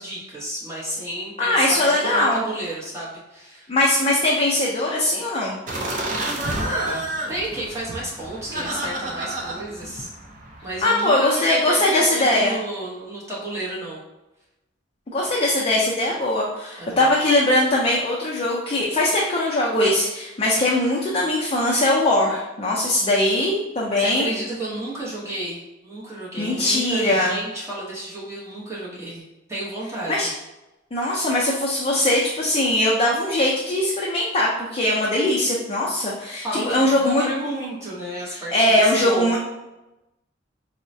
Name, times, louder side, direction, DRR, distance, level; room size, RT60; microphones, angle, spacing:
voice 1, 0.0-3.7 6.6-10.1 10.6-14.0 16.8-17.1 24.0-30.3 36.4-39.4, right 1 dB, 15° right, -7 dB, 0.8 m, -31 dB
voice 2, 1.4-2.4 3.7-5.6 10.8-12.6 15.1-24.3 26.4-27.3 30.1-30.3 30.9-37.2 38.3-39.4, left 1 dB, 30° left, -4 dB, 0.4 m, -21 dB
sound 1, 5.7-10.8, right 1 dB, 40° right, 0.5 m, -30 dB
4.5 x 2.1 x 2.6 m, 0.97 s
head